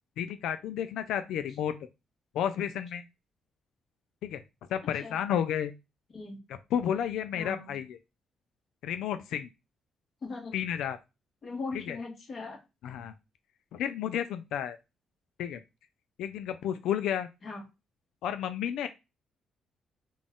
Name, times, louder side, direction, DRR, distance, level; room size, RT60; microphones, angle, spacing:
voice 1, 0.2-1.7 2.3-3.0 4.2-4.4 4.7-5.7 6.5-8.0 8.8-9.5 10.5-11.0 11.7-12.0 12.8-13.1 13.7-14.8 15.4-15.6 16.2-17.3 18.2-18.9, left 9 dB, 85° left, 10 dB, 0.3 m, -31 dB
voice 2, 7.3-7.7 10.2-10.5 11.4-12.6 17.4-17.6, left 3 dB, 50° left, 1 dB, 1.5 m, -39 dB
3.9 x 2.4 x 3.6 m, 0.25 s
cardioid pair, 90°, 0 cm